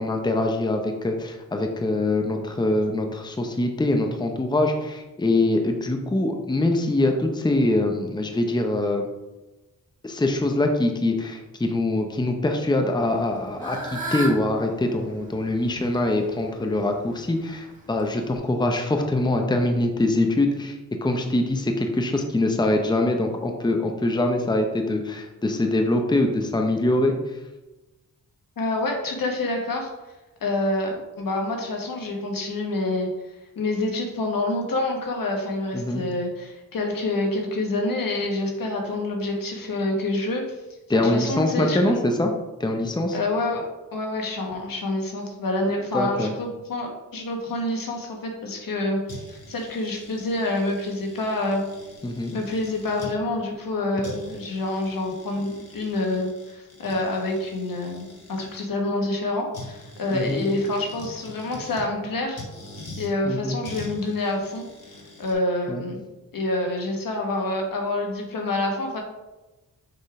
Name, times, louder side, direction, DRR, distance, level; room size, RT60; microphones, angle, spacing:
voice 1, 0.0-9.1 10.0-27.2 35.7-36.0 40.9-42.3 42.6-43.2 45.9-46.3 52.0-52.3 60.1-60.4 63.2-63.6 65.7-65.8, left 2 dB, 15° left, 3 dB, 0.7 m, -23 dB
Fowl / Bird, 13.1-18.4, right 2 dB, 25° right, 1.8 m, -37 dB
voice 2, 28.6-29.9 30.4-33.1 33.6-40.4 40.9-42.0 43.1-43.7 43.9-51.6 52.3-62.4 63.0-64.7 65.2-66.0 66.3-69.0, left 2 dB, 75° left, 1 dB, 1.4 m, -27 dB
sound 1, 49.1-53.1 53.7-53.8 54.0-58.6 59.5-61.9 62.4-63.1 63.6-65.3, left 2 dB, 45° left, 1.9 m, -43 dB
6.7 x 3.6 x 4.8 m, 1.1 s
wide cardioid pair, 95°, 34 cm